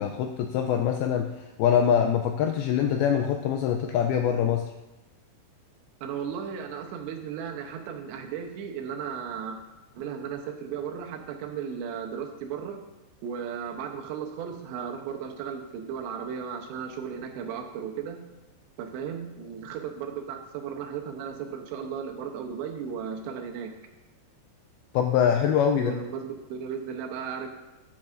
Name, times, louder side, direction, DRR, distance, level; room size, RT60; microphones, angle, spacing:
voice 1, 0.0-4.7 24.9-25.9, left 8 dB, 85° left, 5 dB, 2.2 m, -24 dB
voice 2, 6.0-9.6 10.0-12.8 13.2-18.2 18.8-23.7 25.7-27.5, right 7 dB, 90° right, 3 dB, 3.2 m, -35 dB
12.0 x 9.4 x 2.5 m, 1.0 s
omnidirectional pair, 4.9 m